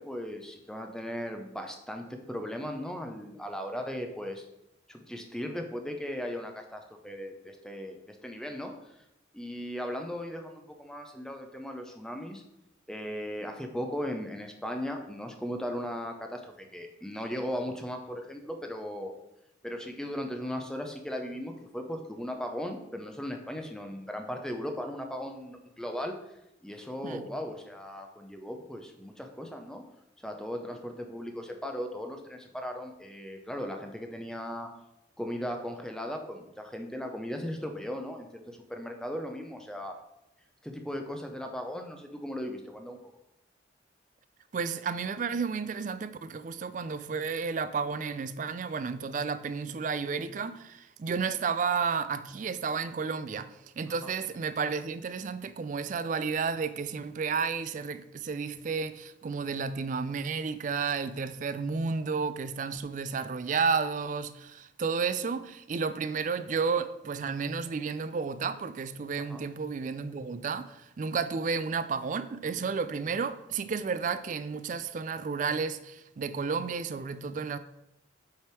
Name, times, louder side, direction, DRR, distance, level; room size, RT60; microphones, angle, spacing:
voice 1, 0.0-4.5 4.9-8.9 9.3-12.4 12.9-19.1 19.6-26.1 26.6-29.8 30.2-34.7 35.2-39.9 40.6-43.0 54.0-54.1 69.3-69.4, equal, 5° left, 0.6 m, -37 dB
voice 2, 44.5-53.5 53.8-77.6, right 5 dB, 40° right, 0.3 m, -32 dB
7.1 x 3.4 x 4.6 m
head